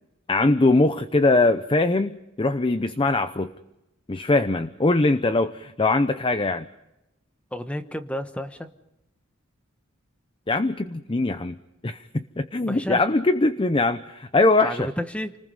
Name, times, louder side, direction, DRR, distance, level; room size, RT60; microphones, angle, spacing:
voice 1, 0.3-3.5 4.1-6.7 10.5-11.6 11.8-14.8, left 2 dB, 25° left, 11 dB, 0.7 m, -22 dB
voice 2, 7.5-8.7 12.7-13.1 14.6-15.4, equal, 5° left, 9 dB, 1.1 m, -31 dB
29.0 x 20.0 x 5.6 m, 0.90 s
head